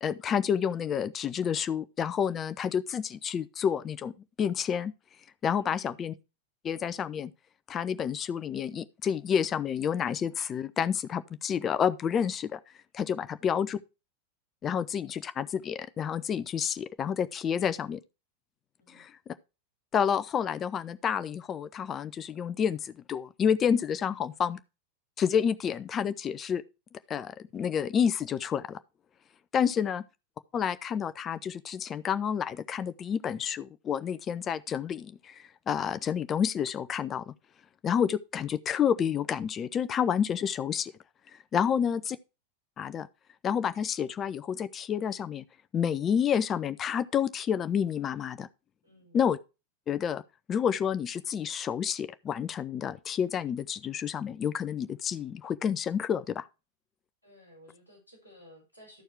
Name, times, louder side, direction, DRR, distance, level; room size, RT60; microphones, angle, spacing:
voice 1, 0.0-4.1 4.4-4.9 5.4-6.1 6.6-7.3 7.7-12.6 12.9-13.8 14.6-18.0 18.9-19.3 19.9-24.6 25.2-26.6 27.1-28.8 29.5-30.0 30.5-37.3 37.8-40.9 41.3-42.2 42.8-43.1 43.4-45.4 45.7-48.5 49.1-49.4 49.9-50.2 50.5-56.5, left 8 dB, 25° left, 0.7 m, -29 dB
voice 2, 5.6-6.0 18.8-19.1 29.6-29.9 41.6-42.1 48.8-49.2 57.2-59.0, equal, 85° right, 5.3 m, -57 dB
13.0 x 4.6 x 4.7 m
figure-of-eight pair, 90°, 0 cm